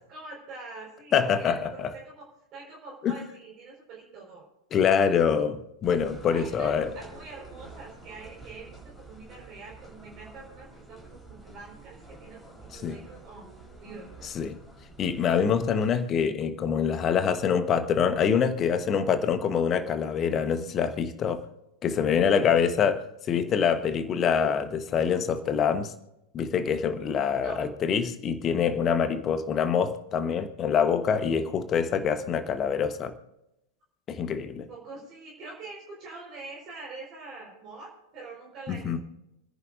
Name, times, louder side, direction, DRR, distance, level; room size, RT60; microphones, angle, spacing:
voice 1, 0.1-2.2 2.5-4.4 6.3-13.5 13.8-14.3 21.9-22.0 27.4-27.6 34.7-39.0, right 3 dB, 35° right, 4.8 m, -44 dB
voice 2, 1.1-1.9 3.0-3.1 4.7-6.9 12.7-13.0 14.3-14.6 15.0-21.4 21.8-25.9 26.3-33.1 34.1-34.7 38.7-39.0, left 7 dB, 30° left, 1.2 m, -25 dB
sound 1, 5.8-15.9, right 2 dB, 5° left, 4.0 m, -48 dB
29.0 x 10.5 x 2.6 m
figure-of-eight pair, 90°, 0 cm